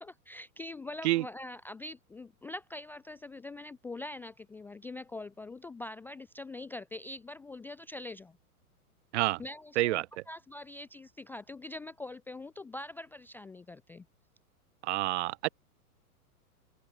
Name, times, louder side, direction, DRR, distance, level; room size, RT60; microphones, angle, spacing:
voice 1, 0.0-8.4 9.4-14.0, left 2 dB, 5° left, 0.4 m, -43 dB
voice 2, 14.8-15.5, right 17 dB, 45° right, 0.9 m, -28 dB
open air
figure-of-eight pair, 105°, 45 cm